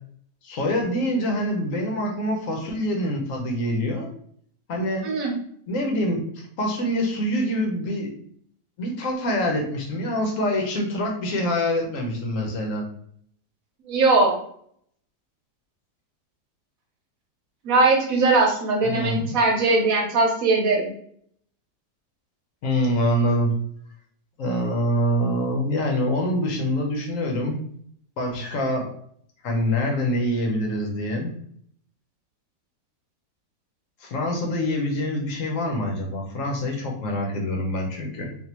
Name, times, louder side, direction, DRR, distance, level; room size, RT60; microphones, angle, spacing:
voice 1, 0.4-4.1 4.7-5.1 5.7-8.1 8.8-12.8 18.8-19.4 22.6-23.5 24.4-27.6 28.2-28.9 29.4-31.3 34.0-38.3, equal, 60° left, 1 dB, 1.0 m, -25 dB
voice 2, 13.9-14.4 17.6-20.9, right 3 dB, 60° right, 0 dB, 1.2 m, -20 dB
3.5 x 2.6 x 2.9 m, 0.63 s
omnidirectional pair, 1.8 m